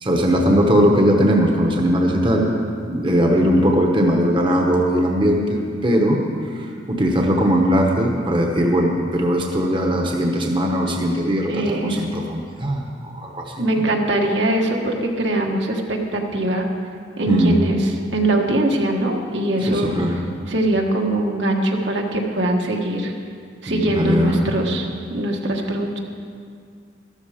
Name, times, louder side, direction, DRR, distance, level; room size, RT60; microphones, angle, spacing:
voice 1, 0.0-2.5 2.9-6.2 6.5-13.8 17.3-17.6 19.7-20.2 23.7-24.5, equal, 25° right, 1 dB, 1.0 m, -19 dB
voice 2, 11.5-12.1 13.6-16.7 17.2-20.0 20.5-23.1 23.6-26.0, right 1 dB, 70° right, 1 dB, 1.5 m, -22 dB
13.0 x 13.0 x 5.0 m, 2.3 s
head